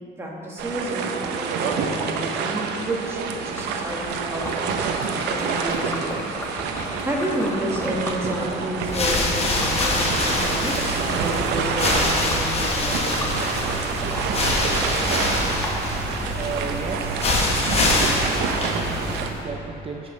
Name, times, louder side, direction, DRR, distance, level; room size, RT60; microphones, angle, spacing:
voice 1, 0.2-6.3 6.7-13.3, right 1 dB, 15° right, -3 dB, 1.6 m, -30 dB
sound 1, 0.6-19.3, right 5 dB, 85° right, 0.6 m, -28 dB
Liquid, 3.1-16.2, left 1 dB, 15° left, 1.3 m, -35 dB
sound 2, 8.8-19.4, left 2 dB, 35° left, 1.1 m, -25 dB
voice 2, 16.3-17.4 18.0-18.3 18.6-20.1, right 5 dB, 35° right, 1 dB, 0.5 m, -34 dB
14.5 x 5.3 x 3.2 m, 3.0 s
cardioid pair, 110°, 17 cm